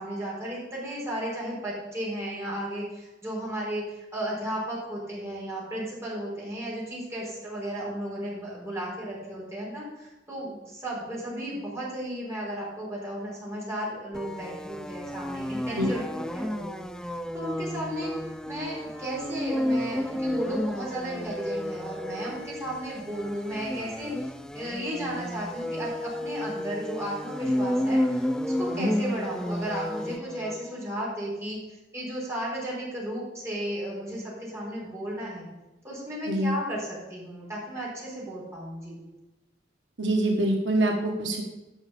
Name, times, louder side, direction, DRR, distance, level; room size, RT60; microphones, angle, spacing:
voice 1, 0.0-16.8 17.3-18.1 18.4-35.5 35.8-39.0, right 1 dB, 15° right, -6 dB, 4.3 m, -34 dB
sound 1, 14.1-30.7, left 1 dB, 5° left, 0.3 m, -32 dB
voice 2, 40.0-41.4, right 1 dB, 80° right, 1 dB, 1.4 m, -25 dB
10.5 x 6.0 x 7.0 m, 1.0 s
head